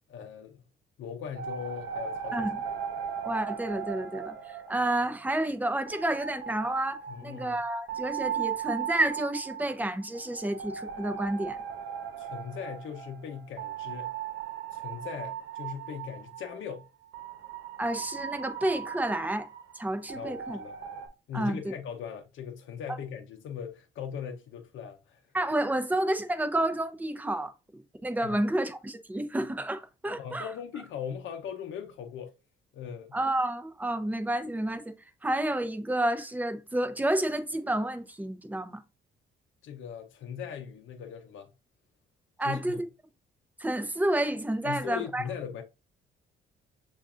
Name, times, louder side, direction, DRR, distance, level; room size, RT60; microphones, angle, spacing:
voice 1, 0.1-0.6 1.0-2.7 7.1-7.6 12.2-14.1 14.7-16.9 20.1-20.7 21.3-25.2 28.2-28.4 30.2-32.3 32.7-33.2 39.6-41.5 42.4-42.8 44.6-45.6, left 7 dB, 75° left, 0.7 m, -39 dB
sound 1, 1.4-5.5 5.9-16.5 17.1-21.1, right 8 dB, 80° right, 0.9 m, -38 dB
voice 2, 3.2-11.6 17.8-19.5 19.7-20.6 21.3-21.6 22.9-23.0 25.3-30.5 33.1-34.9 35.2-38.8 42.4-42.9 43.6-45.2, right 1 dB, 10° right, 0.7 m, -30 dB
6.8 x 2.5 x 2.4 m
cardioid pair, 90°, 20 cm